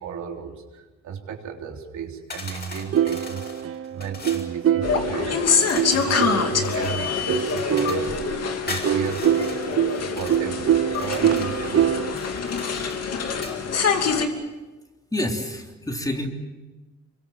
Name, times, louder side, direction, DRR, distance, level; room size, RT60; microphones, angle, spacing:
voice 1, 0.0-9.3 10.1-12.2, right 7 dB, 70° right, 2 dB, 3.7 m, -35 dB
sound 1, 2.3-4.5 5.6-8.2 8.7-10.4 10.9-11.6 12.1-13.6, left 2 dB, 35° left, 7.0 m, -39 dB
sound 2, 2.9-6.8 7.3-12.1, right 10 dB, 50° right, 0.8 m, -24 dB
sound 3, 4.8-14.3, left 5 dB, 55° left, 2.9 m, -25 dB
voice 2, 15.1-16.3, left 1 dB, 10° left, 2 dB, 3.6 m, -28 dB
26.5 x 24.0 x 7.3 m, 1.2 s
cardioid pair, 90°, 30 cm